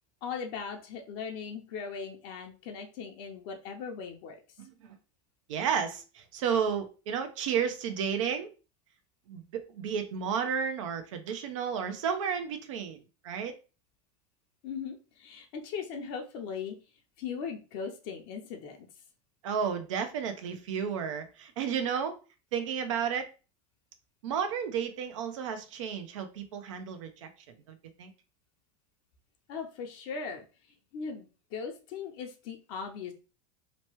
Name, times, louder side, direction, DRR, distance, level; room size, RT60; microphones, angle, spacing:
voice 1, 0.2-4.4 14.6-16.7 17.2-18.8 29.5-30.5 30.9-33.1, left 6 dB, 60° left, 3 dB, 0.6 m, -39 dB
voice 2, 4.6-4.9 5.5-8.5 9.3-13.6 19.4-22.1 22.5-23.3 24.2-27.3 28.0-28.1, right 7 dB, 80° right, 8 dB, 0.6 m, -32 dB
2.9 x 2.2 x 3.0 m, 0.33 s
hypercardioid pair, 105°, 16 cm